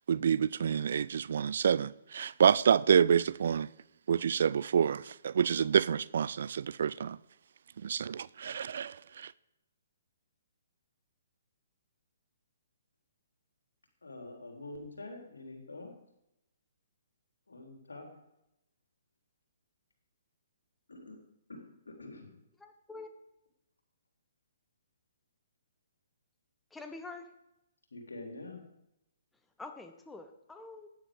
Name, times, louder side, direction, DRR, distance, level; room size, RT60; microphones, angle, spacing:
voice 1, 0.1-3.7 4.1-7.2 7.8-9.3, right 7 dB, 55° right, 0.4 m, -28 dB
voice 2, 14.0-15.9 17.5-18.1 20.9-21.2 21.5-22.3 27.9-28.7, left 2 dB, 70° left, 3.8 m, -46 dB
voice 3, 22.6-23.1 26.7-27.3 29.6-30.9, left 3 dB, 5° left, 1.0 m, -46 dB
16.5 x 10.5 x 5.1 m
figure-of-eight pair, 125°, 0 cm